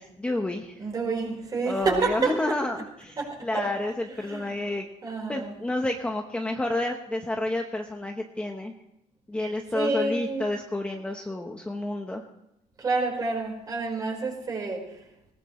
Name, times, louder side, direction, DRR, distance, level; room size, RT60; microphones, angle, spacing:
voice 1, 0.0-0.8 1.7-3.9 4.2-4.8 5.3-8.7 9.3-12.3, left 1 dB, 10° left, 2 dB, 1.0 m, -30 dB
voice 2, 0.8-2.6 3.2-3.7 4.1-4.6 5.0-5.5 9.7-10.5 12.8-14.8, right 3 dB, 25° right, 1 dB, 4.7 m, -29 dB
20.0 x 19.5 x 3.2 m, 0.85 s
cardioid pair, 175°, 14 cm